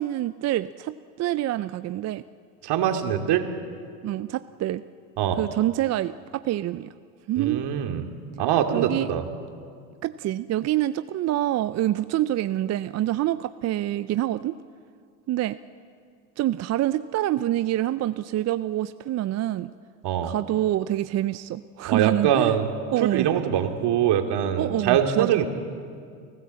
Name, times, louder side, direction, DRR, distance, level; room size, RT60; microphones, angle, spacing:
voice 1, 0.0-2.2 4.0-4.8 5.4-6.9 7.3-7.6 8.7-9.1 10.0-14.5 15.3-15.6 16.4-19.7 20.2-22.5 22.9-23.3 24.6-25.3, right 13 dB, 35° right, 13 dB, 0.5 m, -26 dB
voice 2, 2.6-3.4 5.2-5.4 7.4-8.0 8.4-9.2 20.0-20.3 21.9-22.7 23.0-25.5, right 9 dB, 55° right, 5 dB, 2.5 m, -23 dB
29.5 x 15.0 x 7.6 m, 2.3 s
hypercardioid pair, 85°, 48 cm